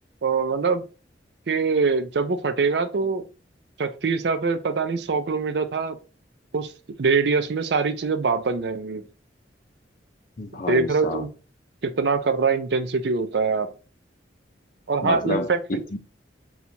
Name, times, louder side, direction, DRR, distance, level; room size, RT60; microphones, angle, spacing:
voice 1, 0.2-0.8 1.5-3.2 3.8-6.0 6.5-6.7 7.0-9.0 10.7-11.3 11.8-13.7 14.9-15.8, right 4 dB, 65° right, 0.5 m, -23 dB
voice 2, 10.4-11.2 15.0-16.0, left 2 dB, 50° left, 0.6 m, -29 dB
2.9 x 2.3 x 4.2 m
head